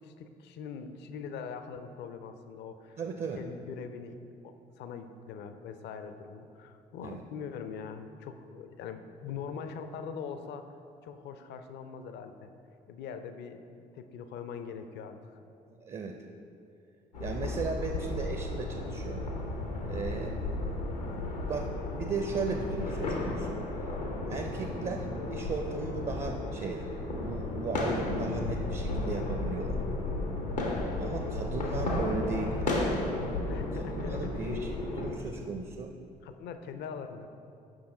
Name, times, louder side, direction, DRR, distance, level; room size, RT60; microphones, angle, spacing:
voice 1, 0.0-3.0 3.3-10.7 11.0-12.5 12.9-13.7 14.0-15.2 19.9-20.0 33.5-34.3 36.2-37.3, left 6 dB, 55° left, 9 dB, 0.5 m, -42 dB
voice 2, 3.0-3.4 7.0-7.2 15.8-16.2 17.2-19.2 19.9-20.5 21.1-23.6 24.3-29.8 31.0-32.8 33.7-35.9, right 4 dB, 35° right, 4 dB, 0.5 m, -36 dB
sound 1, 17.1-35.1, left 2 dB, 90° left, 0.8 m, -33 dB
6.4 x 5.6 x 3.8 m, 2.5 s
figure-of-eight pair, 50°, 21 cm